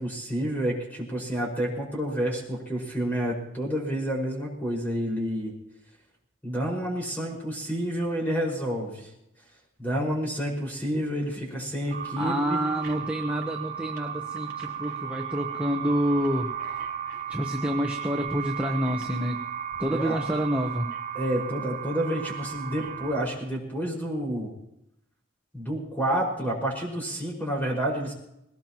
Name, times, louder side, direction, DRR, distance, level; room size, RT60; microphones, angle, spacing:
voice 1, 0.0-5.5 6.4-9.1 9.8-12.6 19.9-20.2 21.2-24.5 25.5-28.1, equal, 10° left, -2 dB, 5.4 m, -29 dB
sound 1, 11.9-23.3, right 8 dB, 50° right, 4.5 m, -35 dB
voice 2, 12.2-16.5 17.3-19.4 19.8-20.9, equal, 5° right, 1 dB, 1.0 m, -28 dB
21.0 x 18.5 x 3.0 m, 0.82 s
head